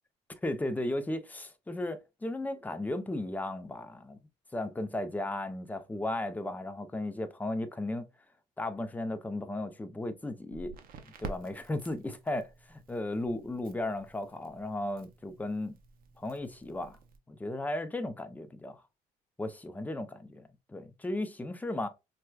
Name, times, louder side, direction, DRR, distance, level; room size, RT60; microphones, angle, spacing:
voice 1, 0.4-4.2 4.5-8.1 8.6-10.7 11.2-15.8 16.2-17.0 17.3-18.8 19.4-21.9, left 1 dB, 10° left, 0.5 m, -35 dB
Crackle, 10.5-17.2, right 4 dB, 60° right, 0.7 m, -49 dB
4.4 x 2.2 x 2.2 m
cardioid pair, 110°, 17 cm